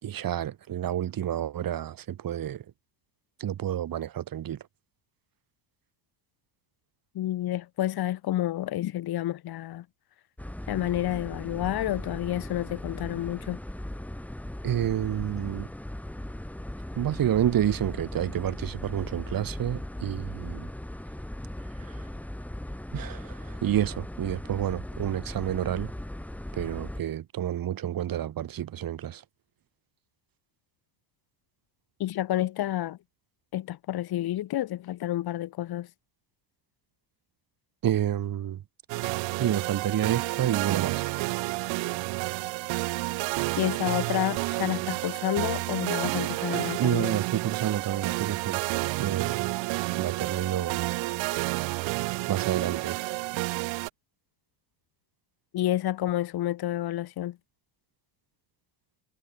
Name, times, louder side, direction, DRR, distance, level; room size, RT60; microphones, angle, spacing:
voice 1, 0.0-2.6 3.4-4.6 14.6-15.7 17.0-20.7 22.9-23.2 23.6-25.9 26.6-29.2 37.8-38.6 39.4-41.0 46.8-48.6 49.0-49.5 50.0-50.9 52.3-53.0, right 11 dB, 50° right, 4.1 m, -29 dB
voice 2, 7.1-9.8 10.7-13.6 32.0-33.0 33.5-35.9 43.6-47.2 55.5-57.4, left 13 dB, 55° left, 2.3 m, -29 dB
sound 1, 10.4-27.0, left 1 dB, 5° left, 2.0 m, -38 dB
sound 2, 38.9-53.9, right 23 dB, 80° right, 3.3 m, -30 dB
cardioid pair, 110°, 45 cm